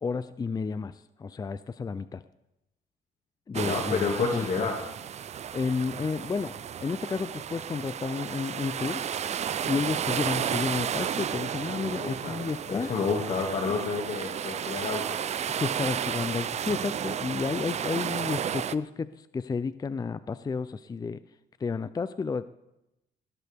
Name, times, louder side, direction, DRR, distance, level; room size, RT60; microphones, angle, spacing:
voice 1, 0.0-2.2 3.5-4.7 5.5-9.0 9.6-12.9 15.6-21.2 21.6-22.5, left 5 dB, 25° left, 14 dB, 0.5 m, -31 dB
voice 2, 3.5-4.8 11.9-15.2, left 4 dB, 55° left, 1 dB, 2.3 m, -30 dB
sound 1, 3.5-18.7, right 9 dB, 45° right, 0.6 m, -33 dB
19.5 x 19.0 x 3.6 m, 0.91 s
cardioid pair, 100°, 16 cm